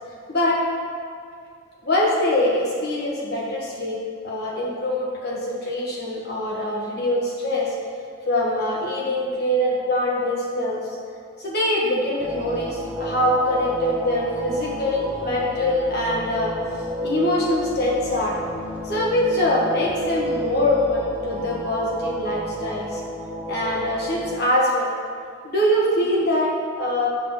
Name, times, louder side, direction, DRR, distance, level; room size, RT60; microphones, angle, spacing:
voice 1, 0.3-0.6 1.8-7.7 8.3-11.1 11.4-16.5 17.0-18.3 18.8-23.0 23.5-24.9 25.4-27.1, left 1 dB, 50° left, -4 dB, 1.4 m, -23 dB
sound 1, 12.2-24.4, right 1 dB, 10° right, 0.7 m, -31 dB
6.6 x 3.9 x 6.0 m, 2.3 s
head